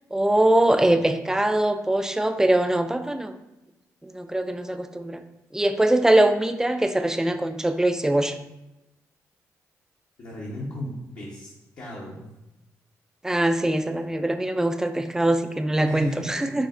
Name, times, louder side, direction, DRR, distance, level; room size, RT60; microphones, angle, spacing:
voice 1, 0.1-3.3 4.0-5.2 5.5-8.3 13.2-16.7, right 1 dB, 5° right, 8 dB, 0.3 m, -22 dB
voice 2, 10.2-11.5 11.8-12.3 15.8-16.5, left 1 dB, 60° left, -6 dB, 0.9 m, -35 dB
5.9 x 2.0 x 2.4 m, 0.96 s
supercardioid pair, 50°, 7 cm